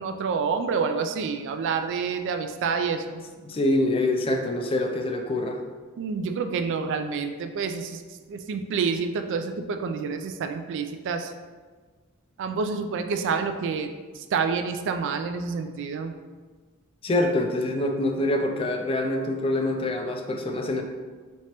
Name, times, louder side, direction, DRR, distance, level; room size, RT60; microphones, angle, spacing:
voice 1, 0.0-3.2 6.0-11.3 12.4-16.1, right 5 dB, 60° right, 7 dB, 0.3 m, -28 dB
voice 2, 3.4-5.6 17.0-20.8, left 1 dB, 25° left, 3 dB, 0.4 m, -25 dB
4.4 x 2.9 x 2.9 m, 1.4 s
head